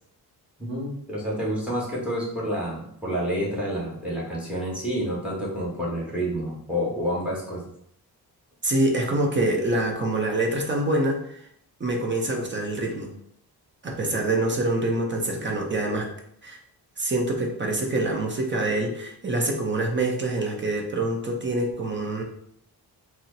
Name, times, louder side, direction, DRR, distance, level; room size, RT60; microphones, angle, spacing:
voice 1, 0.6-7.7, equal, 5° right, -4 dB, 1.4 m, -29 dB
voice 2, 8.6-11.4 11.8-13.1 13.8-16.1 16.4-16.6 17.0-22.2, right 2 dB, 30° right, 1 dB, 0.7 m, -25 dB
4.3 x 2.1 x 3.9 m, 0.71 s
wide cardioid pair, 130°, 39 cm